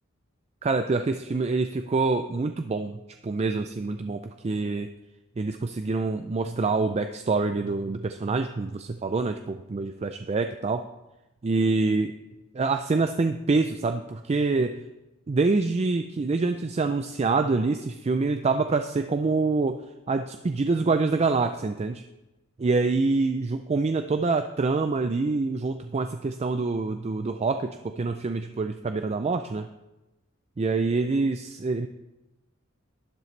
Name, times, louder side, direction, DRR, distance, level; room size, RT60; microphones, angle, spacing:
voice 1, 0.6-3.0 3.2-4.9 5.4-10.8 11.4-12.1 12.5-14.8 15.3-19.8 20.1-22.0 22.6-29.7 30.6-31.9, right 3 dB, 30° right, 8 dB, 0.4 m, -26 dB
12.0 x 10.5 x 3.2 m, 0.98 s
head